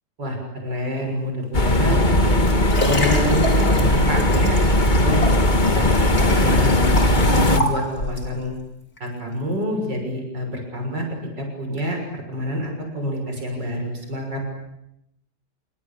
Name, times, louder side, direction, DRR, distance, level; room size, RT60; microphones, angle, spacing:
voice 1, 0.2-2.4 2.9-5.9 6.4-8.5 9.0-11.1 11.4-14.5, equal, 90° right, 2 dB, 7.0 m, -27 dB
sound 1, 1.5-7.6, left 1 dB, 30° left, 1.8 m, -18 dB
Liquid, 2.1-8.3 9.0-9.1, left 1 dB, 60° left, 5.7 m, -29 dB
28.0 x 25.0 x 8.5 m, 0.84 s
omnidirectional pair, 1.8 m